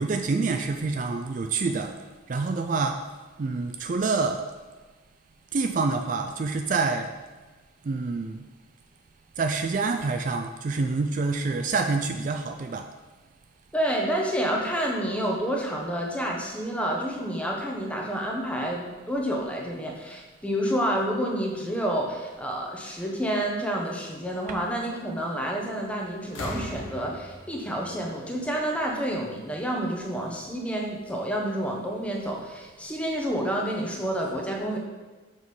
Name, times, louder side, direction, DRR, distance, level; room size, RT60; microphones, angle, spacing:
voice 1, 0.0-1.9 2.3-3.0 3.4-4.4 5.5-7.1 7.9-8.4 9.4-12.8 24.5-24.6, right 4 dB, 40° right, 5 dB, 0.3 m, -27 dB
voice 2, 13.7-34.8, right 1 dB, 5° left, -1 dB, 1.0 m, -29 dB
sound 1, 25.6-25.9 26.2-29.0 30.1-30.2, left 1 dB, 85° left, 1.4 m, -40 dB
6.3 x 4.9 x 5.3 m, 1.3 s
head